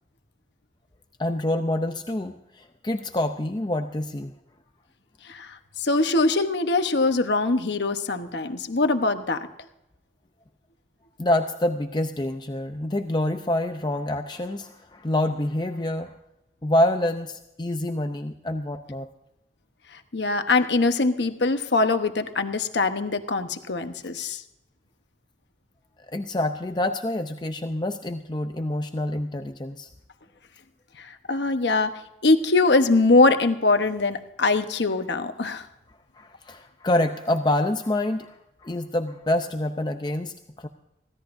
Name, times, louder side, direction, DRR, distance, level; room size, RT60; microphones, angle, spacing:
voice 1, 1.2-4.3 11.2-16.1 16.6-19.1 26.1-29.9 36.1-38.4 38.6-40.7, left 1 dB, 25° left, 6 dB, 0.6 m, -27 dB
voice 2, 5.3-9.5 20.1-24.4 31.0-31.9 32.2-35.6, left 3 dB, 85° left, 8 dB, 1.0 m, -22 dB
24.5 x 16.5 x 2.6 m, 0.89 s
head